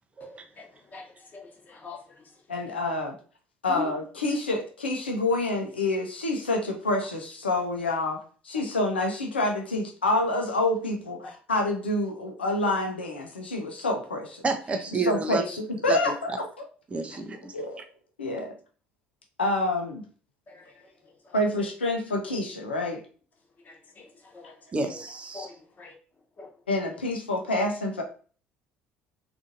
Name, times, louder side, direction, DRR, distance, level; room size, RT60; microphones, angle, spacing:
voice 1, 1.3-2.0 3.7-3.9 20.5-20.6 23.7-23.8 24.3-24.5 24.9-25.0 25.3-25.5 25.8-25.9 26.4-26.5, left 5 dB, 30° left, 1.1 m, -39 dB
voice 2, 2.5-3.2 3.6-8.2 8.4-14.4 15.0-16.3 17.5-17.8 18.2-18.5 19.4-20.0 21.3-23.0 26.7-28.0, left 2 dB, 80° left, 0.5 m, -27 dB
voice 3, 14.4-15.4 15.9-16.0 16.9-17.5 24.7-25.5, right 4 dB, 20° right, 0.5 m, -30 dB
3.6 x 2.5 x 2.5 m
figure-of-eight pair, 55°, 6 cm